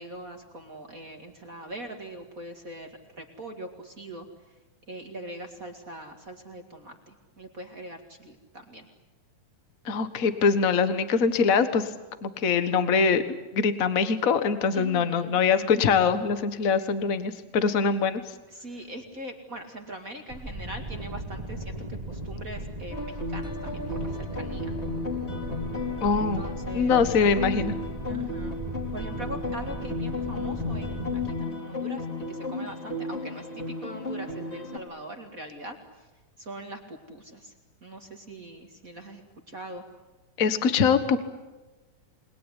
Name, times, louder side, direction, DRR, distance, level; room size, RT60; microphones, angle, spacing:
voice 1, 0.0-4.6 4.9-8.9 14.7-15.4 18.5-24.7 26.2-27.1 28.1-28.5 28.9-36.1 36.4-37.5 37.8-39.8, right 1 dB, 30° right, 4 dB, 2.1 m, -42 dB
voice 2, 9.8-11.9 12.2-13.2 13.5-18.2 26.0-26.4 26.7-27.7 40.4-41.2, left 5 dB, 75° left, 11 dB, 0.7 m, -23 dB
sound 1, 20.3-31.3, right 1 dB, 15° right, 2.0 m, -37 dB
sound 2, 22.9-34.8, left 3 dB, 20° left, 3.2 m, -34 dB
28.5 x 21.0 x 10.0 m, 1.2 s
omnidirectional pair, 3.9 m